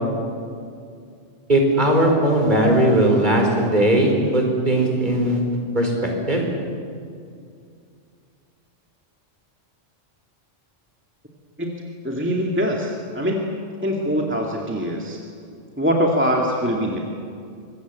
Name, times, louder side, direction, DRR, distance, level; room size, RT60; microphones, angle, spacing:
voice 1, 1.5-5.4 5.7-6.4, right 1 dB, 35° right, 1 dB, 4.9 m, -18 dB
voice 2, 11.6-13.5 13.8-15.2 15.8-17.0, equal, 10° right, -1 dB, 2.2 m, -23 dB
25.5 x 21.0 x 8.4 m, 2.3 s
omnidirectional pair, 1.3 m